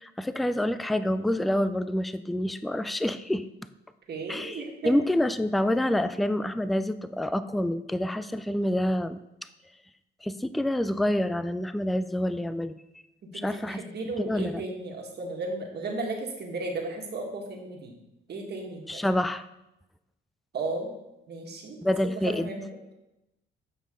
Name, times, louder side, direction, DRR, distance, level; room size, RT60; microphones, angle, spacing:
voice 1, 0.0-3.5 4.3-9.2 10.2-12.8 13.3-13.8 14.2-14.6 18.9-19.4 21.8-22.5, left 1 dB, ahead, 12 dB, 0.3 m, -27 dB
voice 2, 4.1-4.9 13.2-17.9 18.3-19.0 20.5-20.9 21.3-21.8 22.2-22.8, right 3 dB, 55° right, 1 dB, 1.6 m, -35 dB
8.5 x 5.3 x 3.7 m, 0.91 s
cardioid pair, 90°, 20 cm